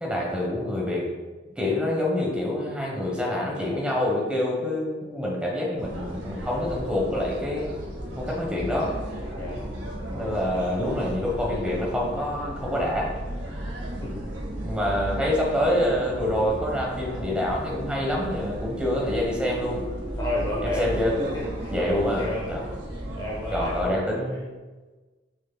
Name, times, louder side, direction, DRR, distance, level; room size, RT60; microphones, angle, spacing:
voice 1, 0.0-1.1 1.5-7.7 8.2-8.9 10.1-13.1 14.6-19.8 20.6-21.2 21.7-22.6 23.5-24.4, left 1 dB, 5° right, -2 dB, 1.2 m, -26 dB
sound 1, 5.8-23.8, right 1 dB, 85° right, 1.5 m, -34 dB
voice 2, 14.0-14.3 20.2-22.5 23.2-24.5, left 1 dB, 20° left, -4 dB, 0.8 m, -32 dB
6.9 x 6.4 x 2.3 m, 1.2 s
head